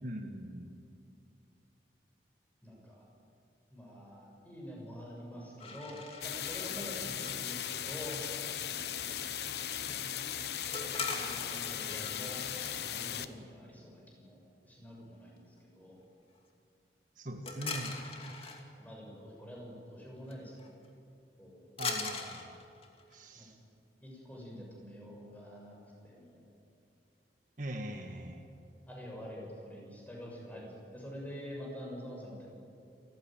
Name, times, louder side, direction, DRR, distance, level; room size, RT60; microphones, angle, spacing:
voice 1, 0.0-0.7 17.2-18.0 21.8-22.6 23.1-23.6 27.6-28.5, right 1 dB, 45° right, 4 dB, 1.7 m, -41 dB
voice 2, 2.6-3.1 3.7-8.2 11.1-12.4 12.8-16.0 18.8-20.7 21.4-21.7 23.3-23.5 24.0-25.8 26.0-26.5 28.9-32.5, equal, 10° left, -2 dB, 6.8 m, -46 dB
sound 1, 5.6-7.4 10.7-12.7 17.5-18.6 20.3-20.4 20.6-20.9 21.8-23.2, left 4 dB, 35° left, 2.5 m, -41 dB
sound 2, 6.2-13.3, left 9 dB, 65° left, 1.0 m, -38 dB
28.5 x 15.5 x 9.1 m, 2.6 s
head